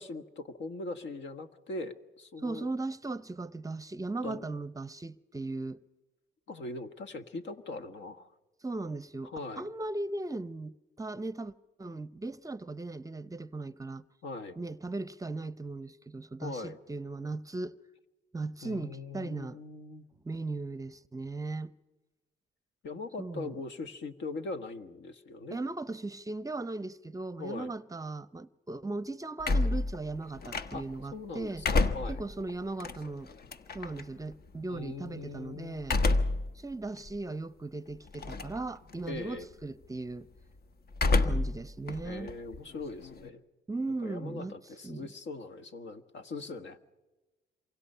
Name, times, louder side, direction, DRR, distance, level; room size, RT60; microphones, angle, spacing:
voice 1, 0.0-2.7 4.2-4.5 6.5-8.3 9.2-9.7 14.2-14.6 16.4-16.8 18.6-20.0 22.8-25.6 27.4-27.7 30.7-30.8 31.1-32.2 34.7-35.8 39.1-39.5 42.0-43.4 44.0-46.9, left 3 dB, 65° left, 1.5 m, -41 dB
voice 2, 2.4-5.8 8.6-11.5 11.8-14.0 14.6-17.8 18.3-19.6 20.2-21.7 23.2-23.6 25.5-31.7 32.1-33.3 33.7-36.0 36.5-40.3 41.2-42.3 43.7-44.5 44.8-45.1, right 2 dB, 15° right, 0.7 m, -38 dB
sound 1, 29.4-31.0 31.4-34.0 35.8-36.5 37.0-37.1 38.1-38.6 38.9-39.4 40.9-41.6 41.9-43.3, left 3 dB, 50° left, 1.2 m, -28 dB
27.5 x 24.0 x 5.6 m
cardioid pair, 90°, 20 cm